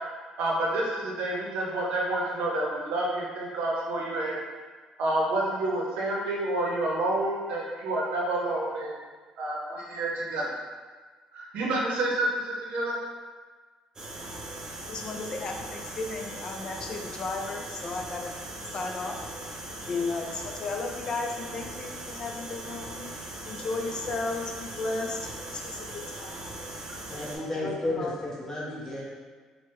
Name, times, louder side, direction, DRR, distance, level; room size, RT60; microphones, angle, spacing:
voice 1, 0.4-4.4 5.0-9.0 9.4-10.5 11.3-13.0, right 2 dB, 80° right, -3 dB, 0.7 m, -29 dB
sound 1, 14.0-27.4, right 1 dB, 30° right, 0.6 m, -40 dB
voice 2, 14.8-18.3 18.7-19.3 19.9-23.1 23.4-26.6 27.4-28.2, left 3 dB, 40° left, 2 dB, 0.4 m, -34 dB
voice 3, 27.1-29.0, left 1 dB, 20° left, -6 dB, 1.0 m, -32 dB
3.3 x 2.2 x 3.0 m, 1.4 s
cardioid pair, 95°, 2 cm